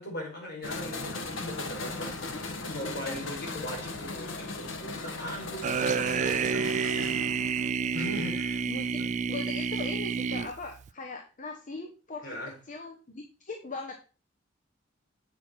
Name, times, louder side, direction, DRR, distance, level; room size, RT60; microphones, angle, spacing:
voice 1, 0.0-2.1 2.7-7.0 7.9-8.6 8.9-9.1 12.2-12.5, equal, 55° left, -2 dB, 5.0 m, -39 dB
sound 1, 0.6-7.7, left 3 dB, 80° left, 1.3 m, -38 dB
voice 2, 2.3-3.2 8.1-8.9 9.3-12.3 12.7-13.9, left 3 dB, 40° left, 3 dB, 1.0 m, -40 dB
sound 2, 5.6-10.9, right 6 dB, 40° right, 0.3 m, -29 dB
8.4 x 6.0 x 4.5 m, 0.34 s
head